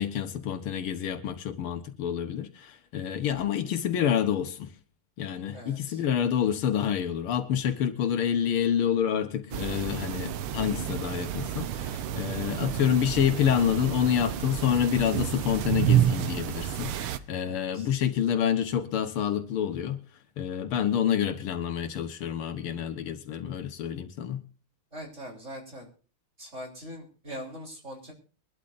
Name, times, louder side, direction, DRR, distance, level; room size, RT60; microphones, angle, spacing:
voice 1, 0.0-4.7 5.2-20.0 20.4-24.4, left 9 dB, 80° left, 2.0 m, -28 dB
voice 2, 5.5-6.0 17.4-17.9 24.9-25.9 26.4-28.1, equal, 35° right, 3.8 m, -42 dB
sound 1, 9.5-17.2, right 10 dB, 90° right, 1.7 m, -29 dB
22.5 x 12.5 x 2.6 m
omnidirectional pair, 2.4 m